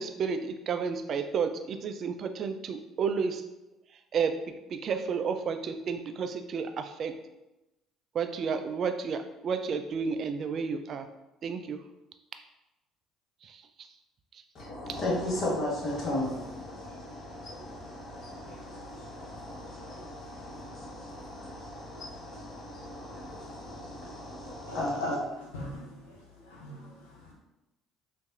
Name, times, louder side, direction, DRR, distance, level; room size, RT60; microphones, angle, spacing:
voice 1, 0.0-3.4 4.1-7.1 8.1-11.1 11.4-11.8 13.4-13.6, right 5 dB, 55° right, 8 dB, 0.3 m, -31 dB
voice 2, 14.5-24.9, left 1 dB, 55° left, -3 dB, 1.3 m, -36 dB
voice 3, 24.7-27.3, left 1 dB, 90° left, -4 dB, 0.7 m, -38 dB
4.0 x 2.5 x 2.4 m, 0.96 s
hypercardioid pair, 60°, 0 cm